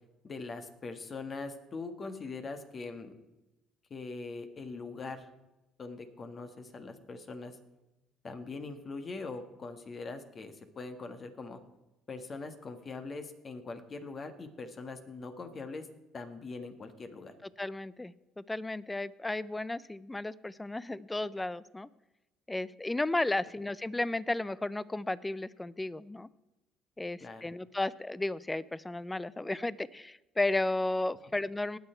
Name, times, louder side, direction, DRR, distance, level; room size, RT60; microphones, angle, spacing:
voice 1, 0.2-3.2 3.9-5.3 5.8-7.6 8.2-11.6 12.1-15.9 16.1-17.3 27.2-27.5, left 3 dB, 40° left, 8 dB, 1.6 m, -42 dB
voice 2, 17.6-21.9 22.5-26.3 27.0-31.8, left 2 dB, 15° left, 20 dB, 0.5 m, -34 dB
19.0 x 6.8 x 4.5 m, 0.99 s
supercardioid pair, 90°, 0 cm